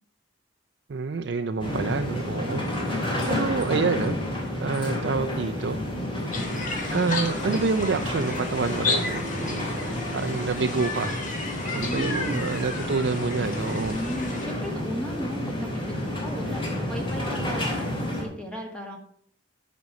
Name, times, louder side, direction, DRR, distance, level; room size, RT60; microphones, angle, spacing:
voice 1, 0.9-2.6 3.3-4.2 4.6-5.8 6.9-11.1 11.7-13.9, right 4 dB, 60° right, 7 dB, 0.5 m, -28 dB
sound 1, 1.6-18.2, left 1 dB, 25° left, 2.7 m, -30 dB
voice 2, 2.4-2.7 11.7-12.4 13.7-19.0, equal, 5° left, 1 dB, 1.2 m, -36 dB
sound 2, 6.3-14.5, left 3 dB, 40° left, 1.8 m, -33 dB
11.0 x 5.2 x 6.3 m, 0.64 s
head